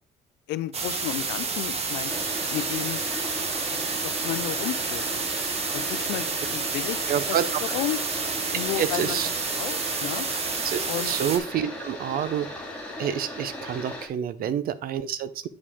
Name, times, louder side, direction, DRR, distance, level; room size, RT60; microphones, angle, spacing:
voice 1, 0.5-2.1 2.5-3.0 3.4-5.2 5.7-7.4 7.7-8.0 8.5-9.2 9.5-10.3 10.9-11.1 14.4-14.6, left 15 dB, 90° left, 15 dB, 0.5 m, -33 dB
sound 1, 0.7-11.4, right 4 dB, 35° right, 1.2 m, -29 dB
FLush Pipe, 2.1-14.1, left 1 dB, 5° left, 2.5 m, -37 dB
voice 2, 7.1-7.5 8.8-9.3 10.5-12.5 13.0-15.5, right 9 dB, 60° right, 15 dB, 0.7 m, -28 dB
8.3 x 5.0 x 3.6 m, 0.39 s
cardioid pair, 110°, 17 cm